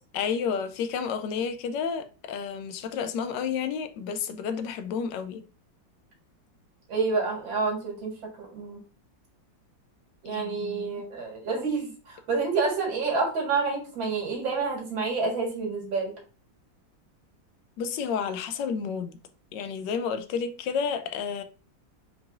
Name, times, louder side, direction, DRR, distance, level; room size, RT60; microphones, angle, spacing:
voice 1, 0.1-5.4 10.3-11.0 17.8-19.2 19.5-21.4, left 6 dB, 75° left, 1.2 m, -31 dB
voice 2, 6.9-8.1 8.4-8.8 10.2-16.1, right 4 dB, 85° right, 2.4 m, -28 dB
4.8 x 3.6 x 2.5 m
omnidirectional pair, 2.1 m